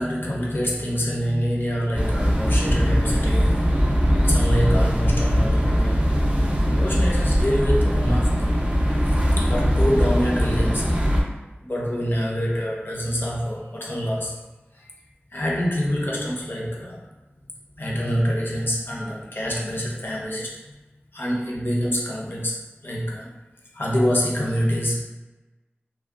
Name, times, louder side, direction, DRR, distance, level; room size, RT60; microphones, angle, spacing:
voice 1, 0.0-3.7 4.1-8.5 9.0-10.9 11.6-14.4 14.8-14.9 15.3-17.1 17.8-20.8 21.1-23.3 23.7-25.0, equal, 55° left, -3 dB, 0.5 m, -26 dB
sound 1, 1.9-11.2, equal, 25° right, 0.4 m, -20 dB
2.5 x 2.1 x 2.4 m, 1.1 s
wide cardioid pair, 45°, 4 cm